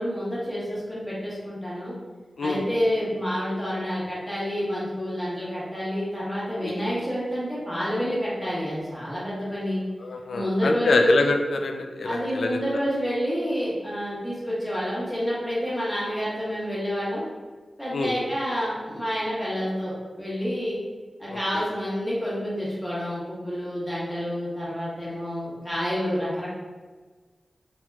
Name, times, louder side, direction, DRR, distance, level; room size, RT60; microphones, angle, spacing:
voice 1, 0.0-1.9 2.4-9.8 10.3-11.1 12.0-17.2 17.8-20.8 21.2-26.5, equal, 5° left, -9 dB, 1.3 m, -28 dB
voice 2, 10.0-12.6 17.9-18.1 21.3-21.6, left 3 dB, 85° left, 4 dB, 0.3 m, -25 dB
4.2 x 2.9 x 2.3 m, 1.4 s
wide cardioid pair, 110°, 0 cm